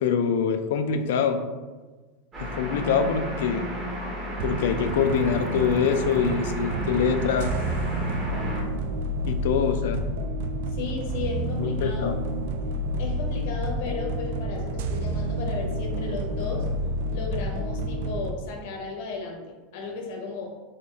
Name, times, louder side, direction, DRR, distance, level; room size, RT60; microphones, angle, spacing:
voice 1, 0.0-1.4 2.4-3.7 4.4-7.5 9.3-10.0 11.6-12.2, left 6 dB, 75° left, 8 dB, 0.4 m, -24 dB
sound 1, 2.3-8.6, equal, 20° right, 1.0 m, -33 dB
sound 2, 4.4-18.3, right 1 dB, 70° right, 0.3 m, -29 dB
voice 2, 10.7-12.2 13.0-16.7 17.1-20.5, left 4 dB, 60° left, 1 dB, 0.8 m, -35 dB
4.3 x 3.1 x 2.8 m, 1.3 s
supercardioid pair, 175°, 0 cm